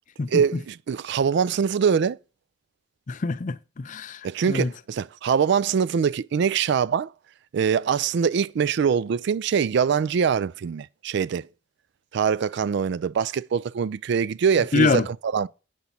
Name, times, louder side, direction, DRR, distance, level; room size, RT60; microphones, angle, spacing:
voice 1, 0.3-2.2 4.2-7.1 7.5-11.5 12.1-15.5, right 6 dB, 55° right, 0.3 m, -23 dB
voice 2, 3.1-4.7 14.7-15.1, left 4 dB, 40° left, 0.5 m, -25 dB
8.2 x 5.2 x 5.8 m
head